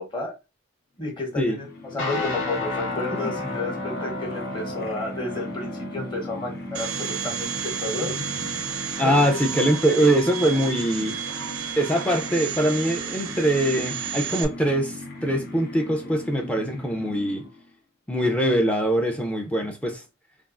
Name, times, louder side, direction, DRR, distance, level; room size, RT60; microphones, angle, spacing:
voice 1, 1.0-8.1 9.0-9.4 9.9-10.1, left 2 dB, 25° left, 0.9 m, -31 dB
sound 1, 1.1-17.7, left 2 dB, 50° left, 0.6 m, -39 dB
sound 2, 2.0-10.2, left 2 dB, 70° left, 1.0 m, -34 dB
Domestic sounds home sounds, 6.7-14.4, right 7 dB, 90° right, 0.5 m, -32 dB
voice 2, 9.0-11.1 11.8-17.4 18.1-20.0, right 1 dB, 5° left, 0.4 m, -23 dB
3.4 x 2.3 x 2.4 m
head